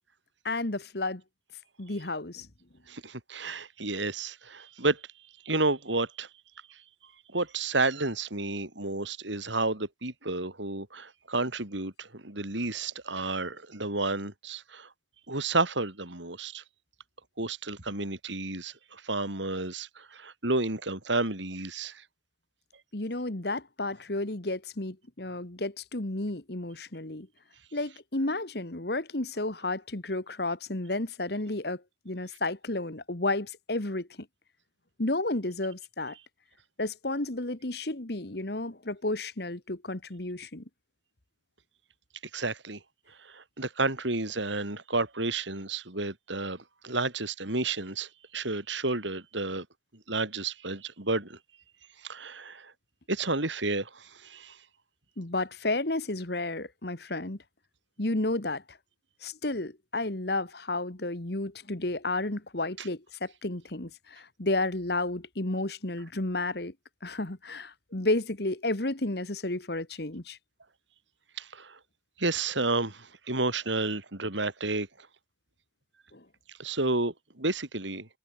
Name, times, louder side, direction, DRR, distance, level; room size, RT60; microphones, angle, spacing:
voice 1, 0.4-1.2 1.8-2.5 22.9-27.3 27.7-34.3 35.0-36.2 36.8-40.6 55.2-57.4 58.0-58.8 59.2-66.7 67.0-70.4 76.1-76.3, left 2 dB, 55° left, 1.8 m, -32 dB
voice 2, 2.9-5.0 5.4-6.3 6.7-6.8 7.3-14.9 15.3-16.6 17.4-22.0 42.3-42.8 43.2-49.7 50.1-51.4 52.0-52.7 53.1-54.6 62.8-62.9 71.4-71.8 72.2-74.9 76.6-78.1, right 2 dB, 75° right, 4.4 m, -31 dB
head